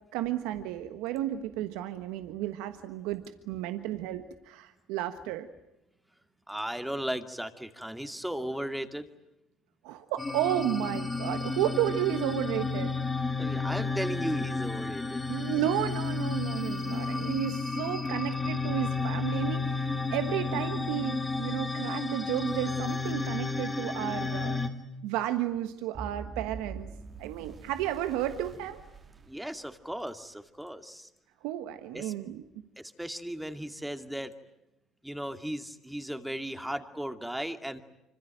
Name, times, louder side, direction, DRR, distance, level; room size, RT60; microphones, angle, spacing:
voice 1, 0.1-5.5 9.8-13.0 15.3-24.6 25.0-26.9 27.2-28.8 31.4-32.4, right 12 dB, 80° right, 9 dB, 1.3 m, -32 dB
voice 2, 6.5-9.1 13.4-15.2 29.3-31.1 31.9-32.1 32.8-34.3 35.0-37.8, right 1 dB, 5° right, 7 dB, 2.5 m, -36 dB
sound 1, 10.2-24.7, left 3 dB, 20° left, 2.8 m, -32 dB
sound 2, 25.9-30.1, right 4 dB, 35° right, 2.6 m, -44 dB
25.5 x 25.5 x 9.1 m, 0.91 s
supercardioid pair, 75°, 0 cm